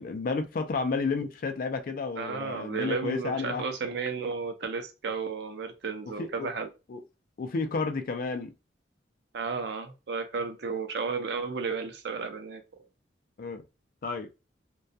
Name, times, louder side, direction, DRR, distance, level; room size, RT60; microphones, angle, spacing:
voice 1, 0.0-3.7 6.2-6.5 6.9-7.0 7.4-8.5 13.4-13.6 14.0-14.3, left 4 dB, 50° left, 0.4 m, -31 dB
voice 2, 2.2-6.7 9.3-12.6, right 4 dB, 65° right, 0.5 m, -33 dB
2.2 x 2.2 x 2.6 m
head